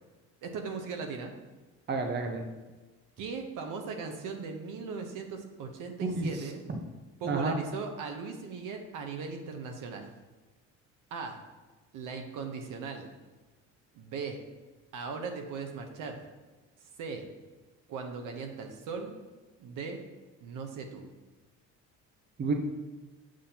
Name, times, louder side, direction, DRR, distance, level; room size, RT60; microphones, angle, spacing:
voice 1, 0.4-1.3 3.2-6.6 7.2-10.1 11.1-11.4 11.9-13.1 13.9-14.4 14.9-16.2 17.0-17.2 17.9-19.2 19.6-20.0 20.4-21.1, right 5 dB, 70° right, 4 dB, 1.0 m, -38 dB
voice 2, 1.9-2.5 6.0-6.3 7.2-7.5 22.4-22.5, right 3 dB, 30° right, 4 dB, 0.8 m, -30 dB
7.5 x 5.7 x 2.9 m, 1.2 s
cardioid pair, 95°, 33 cm